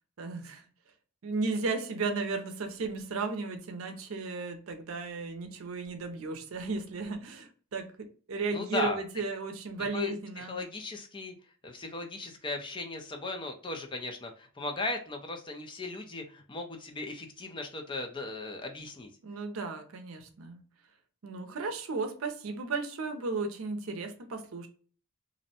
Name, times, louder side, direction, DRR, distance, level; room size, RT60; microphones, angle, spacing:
voice 1, 0.2-0.6 1.2-10.6 19.2-20.6 21.2-24.7, right 3 dB, 75° right, 0.5 m, -35 dB
voice 2, 8.5-9.0 9.9-11.3 11.6-19.1, left 2 dB, 25° left, 0.4 m, -37 dB
2.5 x 2.1 x 2.7 m
head